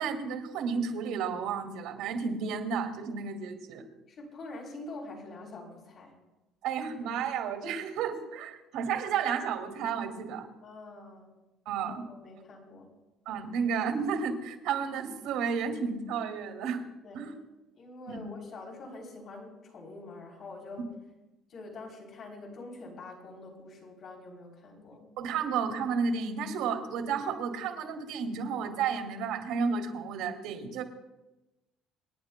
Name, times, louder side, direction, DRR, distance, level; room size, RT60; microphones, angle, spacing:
voice 1, 0.0-3.9 6.6-10.5 11.7-12.0 13.3-16.8 17.1-17.4 18.1-18.2 25.2-30.8, right 6 dB, 80° right, 4 dB, 2.3 m, -32 dB
voice 2, 4.1-6.2 10.6-11.3 11.9-12.9 17.0-17.3 17.7-20.9 21.5-25.1, left 2 dB, 40° left, -1 dB, 3.4 m, -45 dB
27.0 x 10.5 x 2.2 m, 1.0 s
cardioid pair, 160°, 0 cm